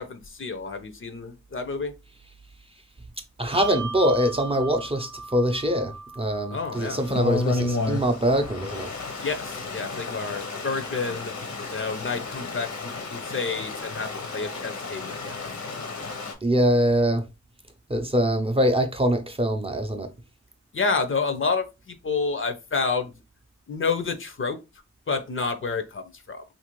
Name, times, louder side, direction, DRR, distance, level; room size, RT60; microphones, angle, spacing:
voice 1, 0.0-1.9 6.5-7.0 9.2-11.3 11.7-15.4 20.7-23.1 23.7-24.6 25.1-26.4, left 4 dB, 45° left, 0.5 m, -29 dB
voice 2, 3.4-8.9 16.4-17.2 17.9-20.1, equal, 20° right, 0.5 m, -23 dB
Bell, 3.5-10.4, right 4 dB, 70° right, 0.5 m, -40 dB
Stream, 6.7-16.3, left 3 dB, 75° left, 0.8 m, -32 dB
2.8 x 2.6 x 3.0 m
cardioid pair, 45°, 29 cm